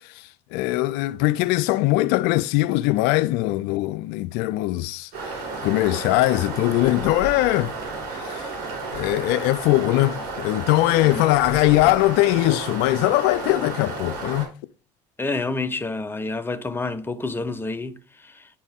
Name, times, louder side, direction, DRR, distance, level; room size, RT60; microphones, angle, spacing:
voice 1, 0.0-7.7 8.1-8.5 8.9-14.5, left 18 dB, 70° left, 0.4 m, -21 dB
sound 1, 5.1-14.5, right 3 dB, 65° right, 4.4 m, -32 dB
voice 2, 15.2-18.5, left 3 dB, 15° left, 0.9 m, -29 dB
9.7 x 4.3 x 3.5 m
supercardioid pair, 90°, 17 cm